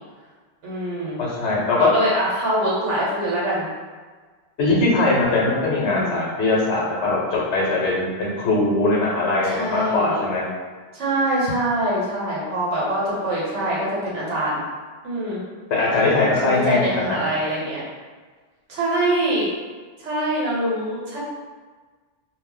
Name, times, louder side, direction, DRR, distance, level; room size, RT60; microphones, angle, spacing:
voice 1, 0.6-1.2 1.8-3.7 5.8-6.3 9.4-10.2 10.9-14.6 15.0-15.4 16.4-17.8 18.7-19.5 20.0-21.2, right 1 dB, 90° right, -5 dB, 1.1 m, -24 dB
voice 2, 1.2-1.9 4.6-10.4 15.7-17.2, left 2 dB, 75° left, -4 dB, 1.0 m, -21 dB
2.4 x 2.0 x 3.7 m, 1.4 s
omnidirectional pair, 1.2 m